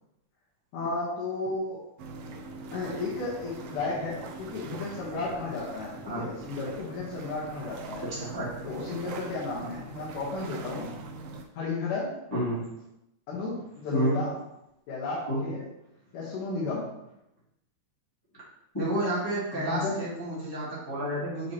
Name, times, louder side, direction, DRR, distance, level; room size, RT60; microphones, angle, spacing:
voice 1, 0.7-1.8 2.7-8.0 8.6-10.9 11.6-12.1 13.3-14.3 14.9-15.6 16.1-16.9 19.5-20.0, left 3 dB, 75° left, -7 dB, 2.8 m, -33 dB
sound 1, 2.0-11.4, right 3 dB, 75° right, 1.5 m, -42 dB
voice 2, 8.1-8.5 12.3-12.7 13.9-14.2 15.3-15.5 18.7-21.5, right 1 dB, 10° left, -10 dB, 1.9 m, -30 dB
8.0 x 5.0 x 3.0 m, 0.86 s
omnidirectional pair, 3.6 m